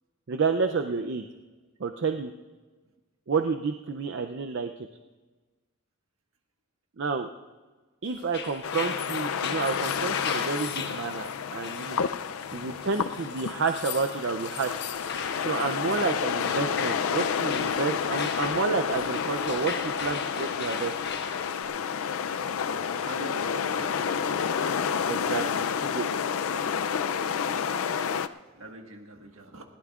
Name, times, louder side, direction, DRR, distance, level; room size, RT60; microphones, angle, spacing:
voice 1, 0.3-1.3 1.8-2.3 3.3-4.9 7.0-7.3 8.0-12.0 12.5-14.8 15.4-20.9 25.1-26.1, right 4 dB, 55° right, 6 dB, 0.5 m, -30 dB
sound 1, 8.2-21.6, left 6 dB, 50° left, 1.2 m, -38 dB
sound 2, 8.6-28.3, left 7 dB, 75° left, 0.4 m, -30 dB
voice 2, 12.5-13.1 15.4-16.0 18.3-18.4 23.0-24.0 28.2-29.6, right 2 dB, 75° right, 3 dB, 1.5 m, -45 dB
20.5 x 16.5 x 2.4 m, 1.3 s
head